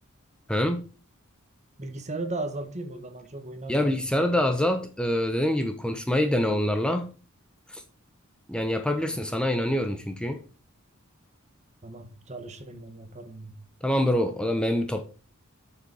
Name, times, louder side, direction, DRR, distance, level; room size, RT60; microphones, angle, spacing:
voice 1, 0.5-0.8 3.7-7.1 7.7-7.8 8.5-10.4 13.8-15.0, left 1 dB, 5° left, 0.8 m, -25 dB
voice 2, 1.8-4.4 9.0-9.3 11.8-13.6, right 2 dB, 35° right, 1.5 m, -37 dB
7.6 x 6.8 x 5.6 m
head